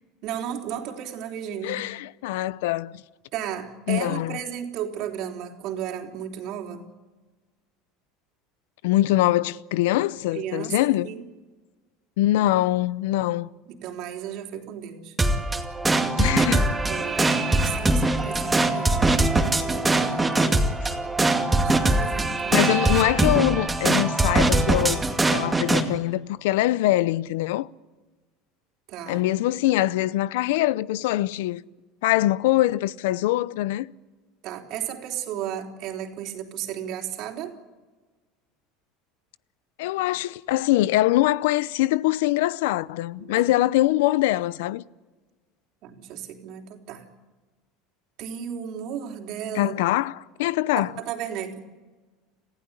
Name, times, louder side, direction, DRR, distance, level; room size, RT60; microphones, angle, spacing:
voice 1, 0.2-1.8 3.3-6.8 10.3-11.2 13.8-15.2 16.2-19.2 19.9-20.6 21.6-22.7 28.9-29.3 34.4-37.5 43.2-43.5 45.8-47.1 48.2-49.7 50.8-51.7, right 9 dB, 60° right, 3.5 m, -34 dB
voice 2, 1.6-2.9 3.9-4.4 8.8-11.1 12.2-13.5 16.2-16.6 22.5-27.7 29.1-31.6 32.0-33.9 39.8-44.8 49.5-50.9, left 16 dB, 80° left, 0.7 m, -23 dB
sound 1, 15.2-25.8, right 2 dB, 10° right, 2.3 m, -22 dB
27.5 x 15.5 x 10.0 m
supercardioid pair, 120°, 0 cm